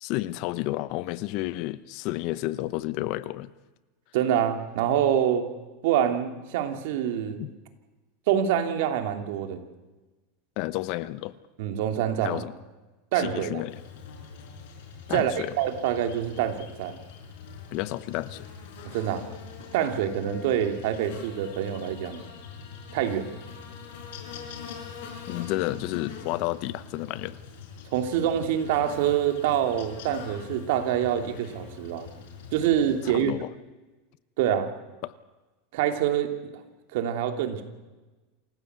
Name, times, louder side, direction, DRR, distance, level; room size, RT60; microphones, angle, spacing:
voice 1, 0.0-3.5 7.4-7.5 10.6-11.3 12.2-12.5 13.2-13.8 15.1-15.5 17.7-18.5 25.3-27.4 33.1-33.5 35.0-35.1, left 17 dB, 50° left, 17 dB, 0.8 m, -31 dB
voice 2, 4.1-5.5 5.8-7.4 8.3-9.6 11.6-12.4 13.1-13.6 15.1-17.0 18.9-19.2 19.7-22.2 22.9-23.3 27.9-32.1 32.5-33.3 34.4-34.7 35.7-36.3 36.9-37.6, right 10 dB, 65° right, 6 dB, 2.8 m, -26 dB
Buzz, 13.7-33.2, left 6 dB, 70° left, 5.5 m, -43 dB
27.5 x 16.0 x 8.1 m, 1.2 s
supercardioid pair, 150°, 0 cm